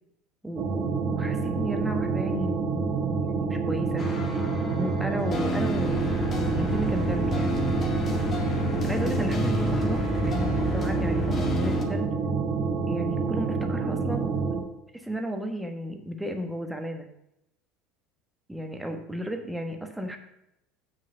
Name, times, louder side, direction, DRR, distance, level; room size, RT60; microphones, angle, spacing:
voice 1, 0.4-4.1 4.7-7.6 8.8-12.2 12.9-14.4 14.9-17.1 18.5-20.2, right 1 dB, 5° right, 5 dB, 1.3 m, -34 dB
sound 1, 0.6-14.6, right 5 dB, 50° right, 1.8 m, -28 dB
sound 2, 4.0-11.8, left 2 dB, 35° left, 1.8 m, -30 dB
7.5 x 6.5 x 5.6 m, 0.83 s
hypercardioid pair, 75°, 0 cm